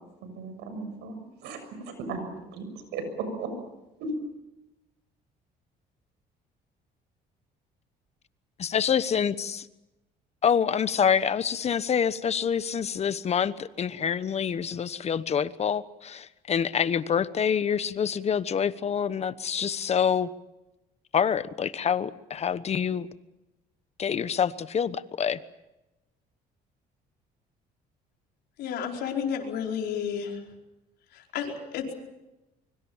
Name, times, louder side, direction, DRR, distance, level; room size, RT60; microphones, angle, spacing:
voice 1, 0.2-1.1 1.4-1.8 2.1-2.7 2.9-3.5 4.0-4.1, right 3 dB, 90° right, 8 dB, 6.6 m, -35 dB
voice 2, 8.6-9.6 10.4-20.3 21.1-23.1 24.0-25.4, left 7 dB, 40° left, 15 dB, 1.1 m, -26 dB
voice 3, 28.6-30.4 31.1-31.9, left 7 dB, 75° left, 1 dB, 4.9 m, -31 dB
24.5 x 23.5 x 7.3 m, 0.97 s
cardioid pair, 110°, 17 cm